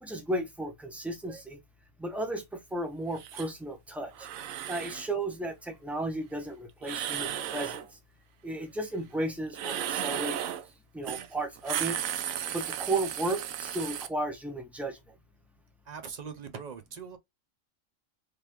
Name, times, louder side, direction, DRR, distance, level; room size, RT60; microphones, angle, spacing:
voice 1, 0.0-1.6 2.0-4.3 4.7-7.8 8.4-10.4 10.9-12.0 12.5-15.0, right 2 dB, ahead, 0.6 m, -34 dB
sound 1, 3.2-3.5 4.1-5.1 6.8-7.9 9.5-10.7 11.1-11.3 11.6-14.1, right 10 dB, 85° right, 1.0 m, -34 dB
voice 2, 15.9-17.2, right 6 dB, 50° right, 0.5 m, -41 dB
3.4 x 3.4 x 2.9 m
omnidirectional pair, 1.4 m